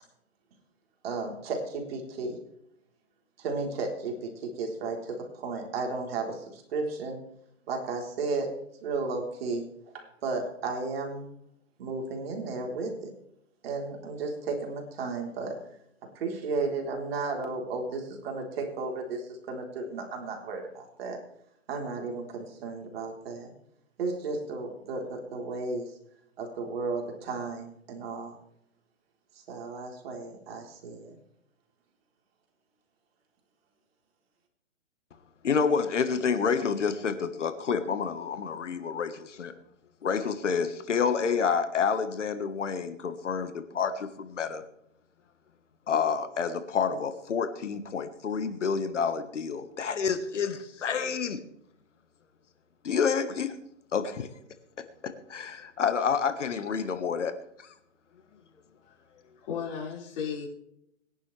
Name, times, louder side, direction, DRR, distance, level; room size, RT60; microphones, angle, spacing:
voice 1, 1.0-2.4 3.4-7.2 7.7-8.5 8.8-9.7 9.9-11.2 11.8-13.1 13.6-15.6 16.1-21.2 21.7-23.5 24.0-26.0 26.4-28.4 29.5-31.2, right 3 dB, 50° right, 2 dB, 4.0 m, -34 dB
voice 2, 35.4-39.5 40.0-44.6 45.9-51.4 52.8-53.5 53.9-54.3 55.0-57.7, left 6 dB, 70° left, 10 dB, 1.5 m, -29 dB
voice 3, 59.4-60.5, left 7 dB, 35° left, -2 dB, 5.2 m, -35 dB
21.0 x 11.0 x 3.4 m, 0.75 s
hypercardioid pair, 130°, 37 cm